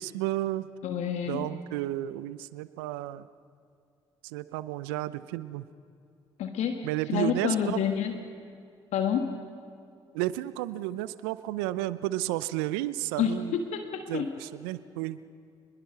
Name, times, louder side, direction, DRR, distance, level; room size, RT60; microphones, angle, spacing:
voice 1, 0.0-0.7 1.3-3.3 4.2-5.6 6.8-7.8 10.1-13.6 14.1-15.2, right 15 dB, 80° right, 16 dB, 0.6 m, -32 dB
voice 2, 0.8-1.5 6.4-8.1 8.9-9.4 13.2-14.3, left 8 dB, 65° left, 6 dB, 1.5 m, -29 dB
26.5 x 21.0 x 5.7 m, 2.3 s
hypercardioid pair, 50°, 12 cm